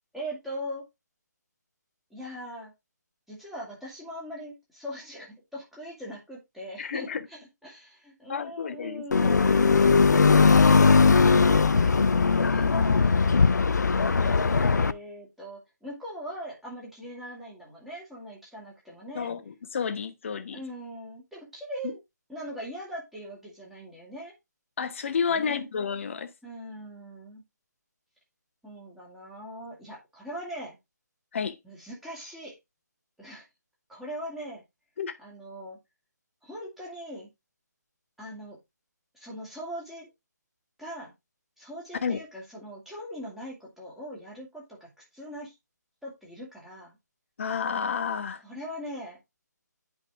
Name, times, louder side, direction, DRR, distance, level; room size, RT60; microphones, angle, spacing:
voice 1, 0.1-0.8 2.1-2.7 3.3-10.2 11.2-12.2 12.5-13.1 14.0-19.3 20.5-22.0 22.3-24.3 25.3-25.7 26.4-27.4 28.6-30.8 31.6-32.5 33.2-33.4 33.9-34.6 35.2-35.8 36.4-37.3 38.2-38.6 39.1-40.1 40.8-41.1 41.6-45.5 46.0-47.0 48.4-49.2, equal, ahead, 2.5 m, -41 dB
voice 2, 6.8-7.2 8.3-9.1 19.1-20.6 21.8-21.9 24.8-26.3 31.3-31.6 35.0-35.1 42.0-42.2 47.4-48.4, left 6 dB, 45° left, 1.0 m, -30 dB
sound 1, 9.1-14.9, left 4 dB, 70° left, 0.6 m, -19 dB
9.1 x 5.2 x 3.6 m
figure-of-eight pair, 150°, 10 cm